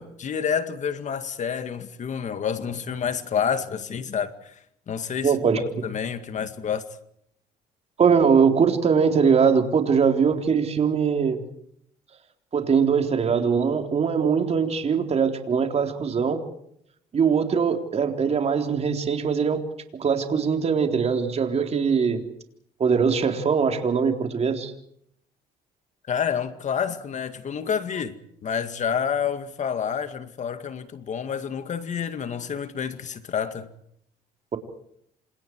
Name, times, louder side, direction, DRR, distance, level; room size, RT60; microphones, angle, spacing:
voice 1, 0.0-4.6 4.9-6.8 26.1-28.1 28.4-33.7, left 7 dB, 45° left, 2.1 m, -29 dB
voice 2, 5.2-5.9 8.0-11.4 12.5-16.4 17.1-19.7 20.0-22.2 22.8-24.7, right 6 dB, 40° right, 3.9 m, -21 dB
28.5 x 27.0 x 4.8 m
cardioid pair, 110°, 17 cm